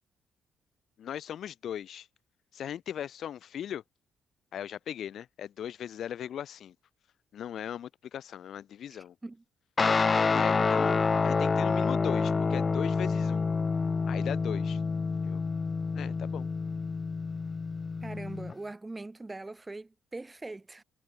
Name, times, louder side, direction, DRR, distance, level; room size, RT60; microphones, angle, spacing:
voice 1, 1.0-2.1 2.5-3.8 4.5-6.7 7.3-9.1 10.2-13.5 14.1-14.8 15.2-15.4 15.9-16.5, left 10 dB, 65° left, 1.0 m, -38 dB
voice 2, 8.9-9.4 18.0-20.8, right 2 dB, 20° right, 6.0 m, -42 dB
Guitar, 9.8-18.5, left 4 dB, 35° left, 0.7 m, -28 dB
cardioid pair, 90°, 0 cm